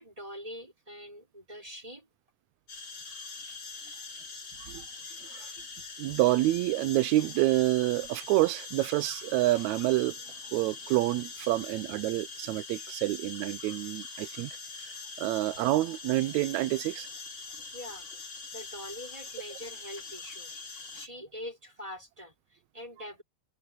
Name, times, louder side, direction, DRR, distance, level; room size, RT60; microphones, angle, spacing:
voice 1, 0.0-2.1 17.7-18.1 18.5-23.2, left 1 dB, 10° right, 5.1 m, -44 dB
sound 1, 2.7-21.1, left 4 dB, 40° left, 4.2 m, -43 dB
voice 2, 6.0-10.2 10.5-14.9 15.2-17.1, right 17 dB, 80° right, 1.7 m, -28 dB
omnidirectional pair, 3.7 m